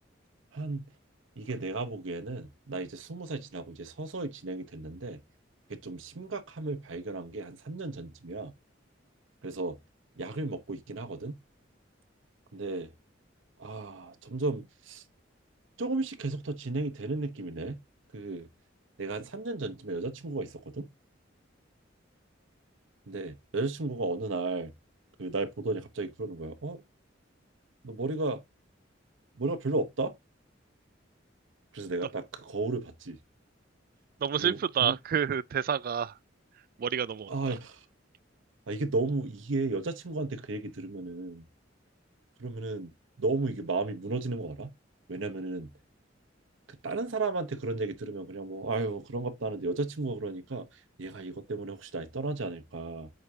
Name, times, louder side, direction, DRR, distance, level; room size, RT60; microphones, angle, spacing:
voice 1, 0.5-0.9 1.4-5.2 5.7-8.5 9.4-9.8 10.2-11.4 12.5-12.9 13.6-15.0 15.8-17.8 18.1-18.5 19.0-20.9 23.1-24.7 25.2-26.8 27.8-28.4 29.4-30.1 31.7-33.2 34.4-35.0 37.3-37.8 38.7-41.5 42.4-44.7 45.1-45.7 46.7-53.1, right 3 dB, 75° right, 0.9 m, -34 dB
voice 2, 34.2-36.1 36.8-37.3, right 8 dB, 50° right, 0.3 m, -28 dB
7.9 x 4.8 x 2.7 m
head